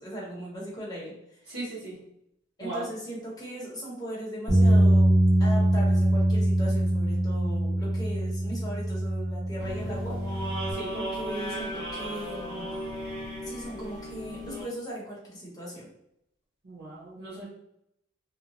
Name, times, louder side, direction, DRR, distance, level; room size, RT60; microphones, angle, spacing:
voice 1, 0.0-1.5 2.6-5.1 5.4-10.2 10.9-12.7 13.4-15.9, right 1 dB, 20° left, -5 dB, 0.9 m, -38 dB
voice 2, 1.5-2.0 2.6-2.8 10.7-11.0 16.6-17.4, right 2 dB, 80° right, -7 dB, 0.9 m, -37 dB
sound 1, 4.5-10.7, right 1 dB, 25° right, 1.0 m, -23 dB
sound 2, 9.6-14.6, equal, 50° right, 1.1 m, -36 dB
2.8 x 2.1 x 2.9 m, 0.77 s
head